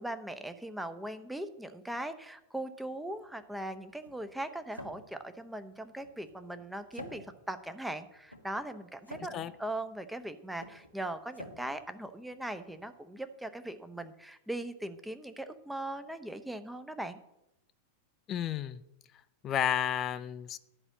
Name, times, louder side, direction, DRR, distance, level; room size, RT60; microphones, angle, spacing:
voice 1, 0.0-17.2, right 1 dB, 5° right, 9 dB, 0.9 m, -40 dB
sound 1, 3.1-12.9, left 1 dB, 90° left, 1.3 m, -51 dB
voice 2, 18.3-18.8 19.4-20.6, left 10 dB, 30° left, 13 dB, 0.6 m, -31 dB
11.0 x 5.4 x 7.2 m, 0.84 s
figure-of-eight pair, 90°, 0 cm